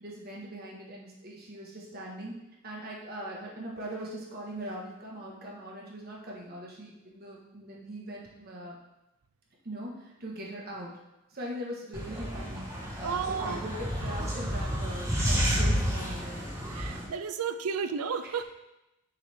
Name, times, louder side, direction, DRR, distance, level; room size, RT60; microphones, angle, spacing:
voice 1, 0.0-2.3 2.6-8.8 9.6-9.9 10.2-10.9 11.3-16.4 18.3-18.4, right 1 dB, 45° right, -3 dB, 1.4 m, -41 dB
sound 1, 11.9-17.0, equal, 15° right, 1.3 m, -30 dB
voice 2, 13.0-13.6 16.7-18.4, right 6 dB, 85° right, 11 dB, 0.5 m, -32 dB
6.5 x 4.3 x 4.3 m, 0.93 s
head